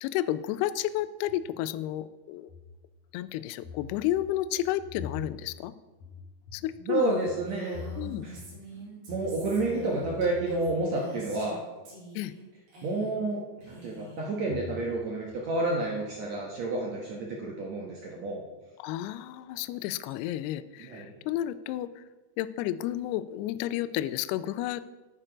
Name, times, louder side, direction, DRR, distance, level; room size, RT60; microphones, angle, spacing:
voice 1, 0.0-2.5 3.1-5.7 6.5-7.2 8.0-8.3 12.2-12.3 18.8-22.0 22.4-25.0, left 13 dB, 90° left, 13 dB, 2.3 m, -31 dB
sound 1, 0.8-2.0 2.4-3.2 3.6-10.8 11.1-11.6 14.3-15.0 15.3-16.3 19.3-19.6 19.9-20.0, left 5 dB, 70° left, 1.8 m, -45 dB
voice 2, 6.8-7.8 8.2-8.4 9.1-11.6 12.8-18.4 20.8-21.1, right 2 dB, 85° right, -2 dB, 1.5 m, -30 dB
Female speech woman speaking, 7.0-11.6 11.9-12.4 12.7-13.3 13.6-14.3, right 1 dB, 60° right, 5.7 m, -45 dB
11.0 x 9.0 x 5.0 m, 1.2 s
omnidirectional pair, 5.2 m